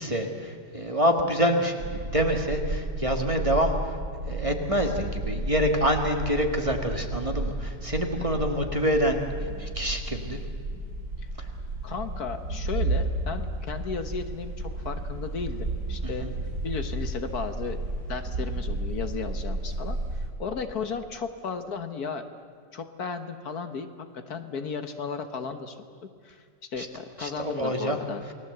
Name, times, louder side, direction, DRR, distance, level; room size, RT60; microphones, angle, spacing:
voice 1, 0.0-4.0 4.3-9.2 9.6-10.4 11.4-11.5 16.0-16.3 26.8-26.9 27.2-28.0, equal, 20° right, 3 dB, 1.8 m, -26 dB
sound 1, 1.8-20.3, right 2 dB, 55° right, 4.8 m, -32 dB
voice 2, 11.8-16.3 16.6-17.8 18.1-22.3 22.7-23.9 24.1-26.4 26.7-28.2, left 5 dB, 60° left, 8 dB, 1.7 m, -35 dB
29.0 x 19.5 x 8.0 m, 2.1 s
omnidirectional pair, 1.9 m